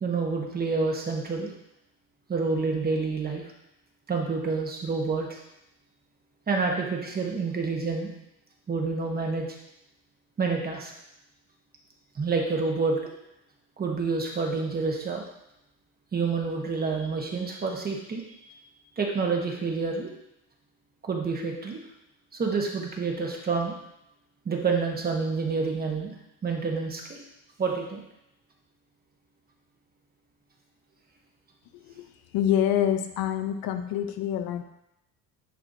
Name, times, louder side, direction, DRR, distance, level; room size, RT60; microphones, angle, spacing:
voice 1, 0.0-1.5 2.3-3.4 4.1-5.4 6.5-8.1 8.7-9.5 10.4-10.9 12.1-13.0 13.8-15.2 16.1-18.4 19.0-20.1 21.1-21.8 22.3-23.7 24.4-26.1 26.4-27.2 27.6-28.0, right 4 dB, 25° right, 1 dB, 1.1 m, -28 dB
voice 2, 32.3-34.6, left 10 dB, 70° left, 8 dB, 0.7 m, -26 dB
10.5 x 4.6 x 2.7 m, 0.84 s
cardioid pair, 140°, 37 cm